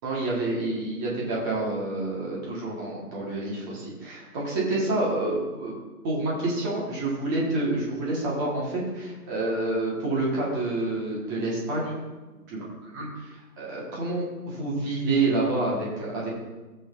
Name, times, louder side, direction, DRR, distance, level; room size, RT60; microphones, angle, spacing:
voice 1, 0.0-5.8 6.0-11.9 12.3-12.6 12.9-16.3, right 2 dB, 10° right, -5 dB, 1.3 m, -28 dB
16.0 x 7.9 x 2.5 m, 1.2 s
hypercardioid pair, 160°, 47 cm